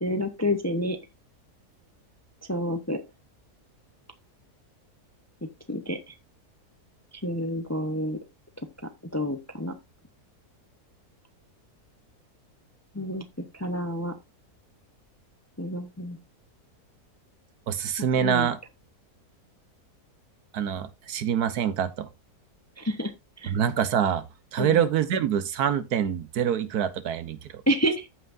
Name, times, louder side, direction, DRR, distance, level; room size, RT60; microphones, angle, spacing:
voice 1, 0.0-1.0 2.5-3.0 5.7-6.1 7.2-8.2 9.1-9.7 12.9-13.2 13.6-14.1 15.6-16.2 18.2-18.5 22.8-23.1 23.4-23.5 24.6-24.8 27.7-28.1, equal, 15° left, 0.5 m, -28 dB
voice 2, 17.7-18.6 20.5-22.1 23.5-24.2 24.5-27.6, right 8 dB, 75° right, 1.4 m, -25 dB
14.0 x 5.8 x 2.6 m
omnidirectional pair, 1.7 m